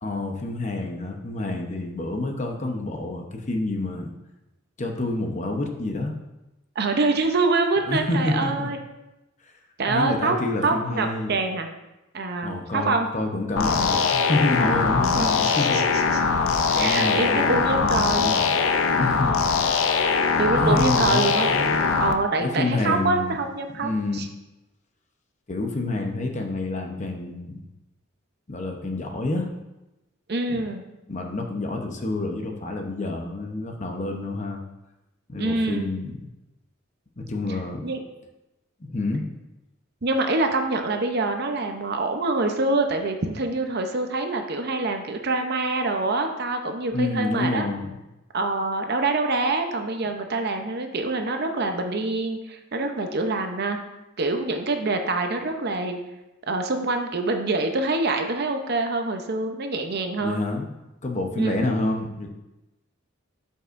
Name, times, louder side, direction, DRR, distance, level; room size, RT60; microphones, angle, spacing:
voice 1, 0.0-4.1 4.8-6.1 7.9-8.7 9.9-11.3 12.4-15.9 16.8-18.5 19.0-19.4 20.6-21.8 22.4-23.4 23.8-24.2 25.5-27.6 28.5-29.5 30.5-30.6 31.1-34.6 35.3-36.1 37.2-37.8 38.8-39.2 46.9-47.9 60.2-60.6 61.0-62.3, left 2 dB, 35° left, 3 dB, 0.8 m, -28 dB
voice 2, 6.8-8.8 9.8-10.4 10.6-11.7 12.1-13.1 15.0-15.8 16.7-18.4 20.4-21.5 22.0-24.3 30.3-30.8 35.4-35.9 37.8-38.0 40.0-47.7 48.3-53.8 54.2-56.0 56.5-60.4 61.4-61.6, right 3 dB, 50° right, 5 dB, 0.7 m, -25 dB
sound 1, 13.6-22.1, left 5 dB, 75° left, 0.6 m, -22 dB
12.5 x 5.5 x 2.6 m, 0.98 s
head